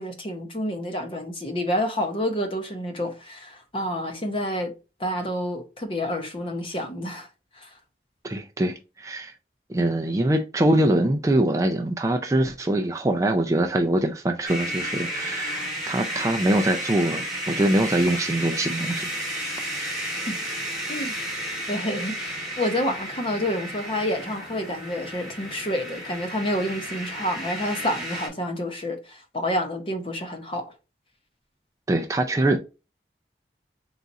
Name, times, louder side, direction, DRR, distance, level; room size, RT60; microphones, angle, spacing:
voice 1, 0.0-4.7 5.0-7.3 7.5-7.8 20.3-20.6 20.9-21.2 21.7-30.7, equal, 30° left, 0.7 m, -29 dB
voice 2, 8.2-9.3 9.7-17.2 17.5-19.1 19.7-19.9 31.9-32.6, right 1 dB, 20° right, 0.3 m, -23 dB
sound 1, 14.5-28.3, right 1 dB, ahead, 1.2 m, -32 dB
3.9 x 2.4 x 4.0 m
head